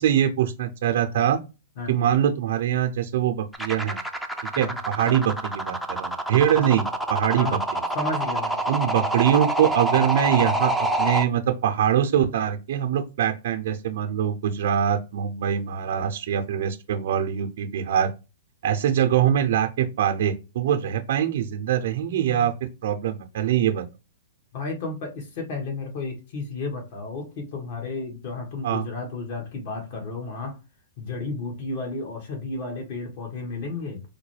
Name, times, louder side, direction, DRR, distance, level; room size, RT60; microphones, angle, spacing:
voice 1, 0.0-1.4 1.9-4.0 4.6-7.5 8.7-18.1 18.6-22.5 22.8-23.8 28.6-28.9, right 10 dB, 60° right, 0.5 m, -23 dB
sound 1, 3.5-11.2, right 1 dB, ahead, 0.5 m, -26 dB
voice 2, 7.9-8.6 22.1-22.5 24.5-30.6 31.0-34.0, left 3 dB, 55° left, 1.4 m, -33 dB
4.6 x 2.2 x 3.2 m
hypercardioid pair, 125°, 0 cm